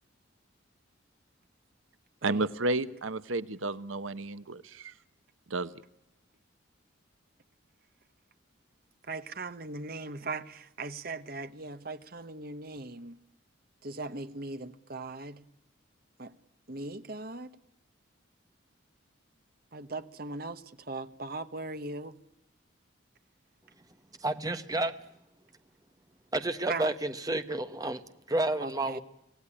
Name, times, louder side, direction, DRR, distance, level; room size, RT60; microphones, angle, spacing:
voice 1, 2.2-4.9 5.5-5.7, right 2 dB, 85° right, 1.0 m, -32 dB
voice 2, 9.1-13.2 13.8-15.4 16.2-16.3 16.7-17.5 19.7-22.2 26.7-26.9 28.6-29.0, right 3 dB, 45° right, 1.2 m, -39 dB
voice 3, 24.2-25.0 26.3-29.0, right 2 dB, 20° right, 1.2 m, -30 dB
25.5 x 17.5 x 10.0 m
head